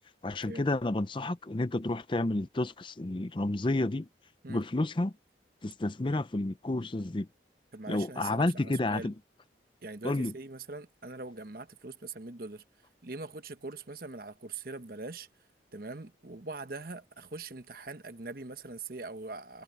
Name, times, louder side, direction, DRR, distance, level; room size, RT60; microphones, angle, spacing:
voice 1, 0.2-4.1 4.5-5.1 5.6-7.3 7.9-9.1 10.0-10.3, left 2 dB, 25° left, 0.5 m, -30 dB
voice 2, 7.7-9.1 9.8-12.6 13.0-15.3 15.7-19.6, right 3 dB, 50° right, 1.1 m, -42 dB
head